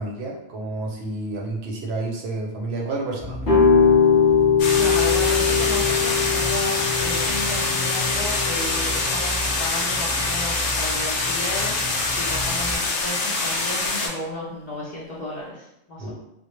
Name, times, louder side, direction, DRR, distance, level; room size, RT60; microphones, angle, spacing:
voice 1, 0.0-3.6 16.0-16.1, right 2 dB, 65° right, 0 dB, 0.7 m, -30 dB
sound 1, 3.2-12.8, equal, 25° right, 0.6 m, -33 dB
sound 2, 3.4-9.2, left 6 dB, 20° left, 0.8 m, -21 dB
sound 3, 4.6-14.1, left 3 dB, 80° left, 0.9 m, -25 dB
voice 2, 4.8-11.7 12.1-16.1, left 2 dB, 60° left, -6 dB, 0.4 m, -34 dB
2.1 x 2.0 x 2.9 m, 0.83 s
omnidirectional pair, 1.3 m